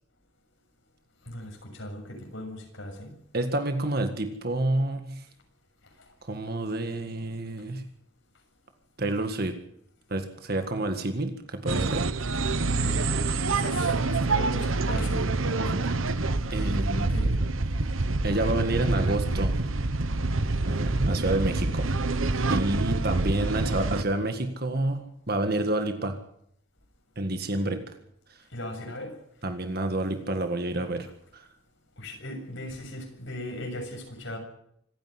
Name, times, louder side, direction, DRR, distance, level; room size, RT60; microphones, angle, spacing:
voice 1, 1.3-3.1 12.7-13.1 13.5-15.3 16.9-17.3 28.5-29.1 32.0-34.4, left 1 dB, 70° left, 2 dB, 7.2 m, -38 dB
voice 2, 3.3-5.3 6.2-7.8 9.0-9.6 10.1-12.1 15.6-15.9 16.5-17.1 18.2-19.6 20.6-21.9 22.5-26.2 27.2-27.8 28.3-28.4 29.4-31.1 31.3-31.5, right 2 dB, 50° right, 7 dB, 1.8 m, -29 dB
sound 1, 11.7-24.0, right 3 dB, 85° right, 1.1 m, -26 dB
25.5 x 10.5 x 9.8 m, 0.73 s
head